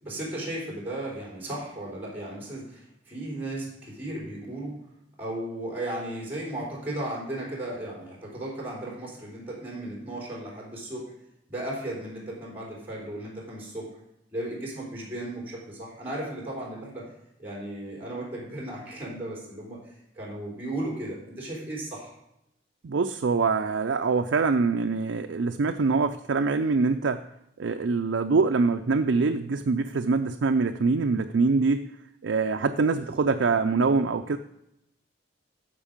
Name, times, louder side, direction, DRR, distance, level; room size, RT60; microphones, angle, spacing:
voice 1, 0.0-4.8 5.2-11.1 11.5-13.9 14.3-17.1 17.4-22.1 33.0-33.2, right 1 dB, 10° right, -3 dB, 3.7 m, -35 dB
voice 2, 22.8-27.2 27.6-31.8 32.2-34.4, right 4 dB, 75° right, 6 dB, 0.5 m, -24 dB
14.5 x 5.2 x 5.2 m, 0.84 s
head